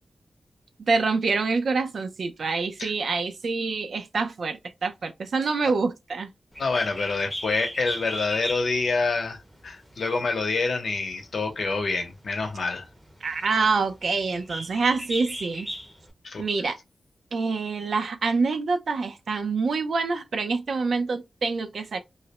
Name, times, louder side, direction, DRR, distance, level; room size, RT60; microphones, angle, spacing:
voice 1, 0.9-6.3 13.2-15.7 16.4-16.8 17.3-22.0, right 4 dB, 75° right, 0.5 m, -26 dB
Bird, 6.5-16.1, equal, 5° right, 0.6 m, -38 dB
voice 2, 6.6-12.9 16.2-16.4, left 3 dB, 70° left, 0.7 m, -27 dB
2.4 x 2.0 x 2.8 m
wide cardioid pair, 105°, 0 cm